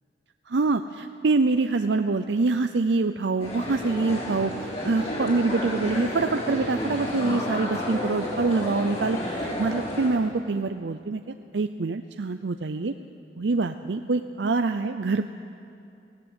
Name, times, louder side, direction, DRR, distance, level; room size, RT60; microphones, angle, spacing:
voice 1, 0.5-11.2 11.5-12.9 13.4-15.2, right 3 dB, 90° right, 8 dB, 0.6 m, -25 dB
sound 1, 3.4-10.1, left 1 dB, 40° left, 5.5 m, -31 dB
18.5 x 17.5 x 8.2 m, 2.6 s
head